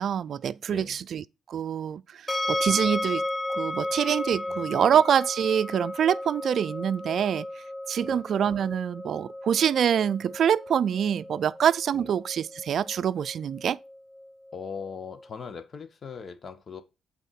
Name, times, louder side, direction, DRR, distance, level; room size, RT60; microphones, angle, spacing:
voice 1, 0.0-2.2 2.5-3.2 3.5-7.5 7.9-13.8, right 8 dB, 60° right, 0.4 m, -25 dB
voice 2, 0.7-1.0 4.5-4.8 8.0-8.2 11.9-12.1 14.5-16.8, left 6 dB, 45° left, 1.4 m, -40 dB
sound 1, 2.3-15.3, left 1 dB, 10° left, 0.4 m, -34 dB
8.3 x 4.4 x 5.8 m
cardioid pair, 90°, 0 cm